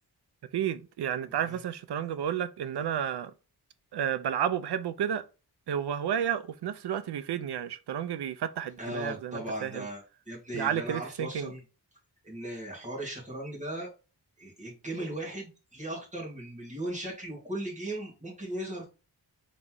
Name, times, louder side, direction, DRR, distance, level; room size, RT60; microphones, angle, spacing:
voice 1, 0.5-3.3 3.9-5.2 5.7-9.9 10.5-11.5, right 9 dB, 80° right, 0.6 m, -31 dB
voice 2, 1.3-1.6 8.8-11.6 12.2-13.9 14.4-18.9, right 1 dB, 20° right, 2.0 m, -37 dB
4.1 x 3.1 x 3.7 m
wide cardioid pair, 145°, 39 cm